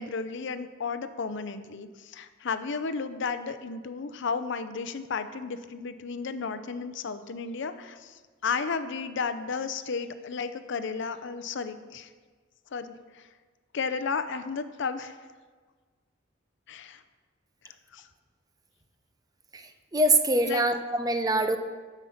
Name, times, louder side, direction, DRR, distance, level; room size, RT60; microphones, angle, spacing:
voice 1, 0.0-8.1 8.4-12.1 12.7-12.9 13.7-15.1 16.7-17.0 17.9-18.0 20.4-20.7, left 5 dB, 65° left, 11 dB, 0.6 m, -33 dB
voice 2, 19.9-21.6, right 2 dB, 20° right, 7 dB, 0.6 m, -24 dB
10.0 x 7.1 x 5.7 m, 1.5 s
head